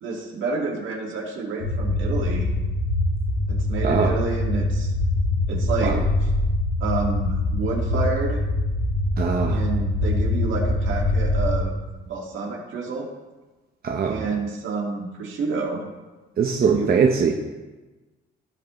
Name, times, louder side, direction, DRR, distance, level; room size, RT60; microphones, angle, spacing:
voice 1, 0.0-2.5 3.5-4.9 5.5-5.9 6.8-8.4 9.5-11.8 12.0-13.1 14.0-15.9 16.6-16.9, right 4 dB, 80° right, 0 dB, 2.0 m, -29 dB
sound 1, 1.6-11.6, left 1 dB, 75° left, 2.8 m, -23 dB
voice 2, 3.8-4.1 5.8-6.0 9.2-9.6 13.8-14.3 16.4-17.3, right 6 dB, 50° right, 2 dB, 0.9 m, -21 dB
16.0 x 5.4 x 3.1 m, 1.2 s
cardioid pair, 90°, 20 cm